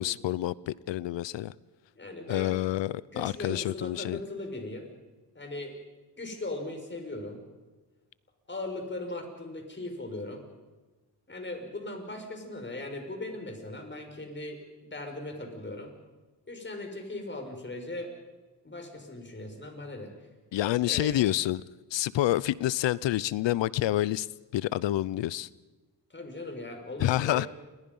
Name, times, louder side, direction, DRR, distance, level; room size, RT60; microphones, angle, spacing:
voice 1, 0.0-1.5 2.3-4.2 20.5-21.6 21.9-24.3 24.5-25.5 27.0-27.5, left 14 dB, 75° left, 0.7 m, -28 dB
voice 2, 2.0-2.5 3.1-4.9 5.3-5.7 6.2-7.4 8.5-10.4 11.3-15.9 16.5-18.1 18.6-20.1 20.8-21.3 26.1-27.5, left 2 dB, 25° left, 6.1 m, -38 dB
29.0 x 21.5 x 5.6 m
cardioid pair, 85°, 44 cm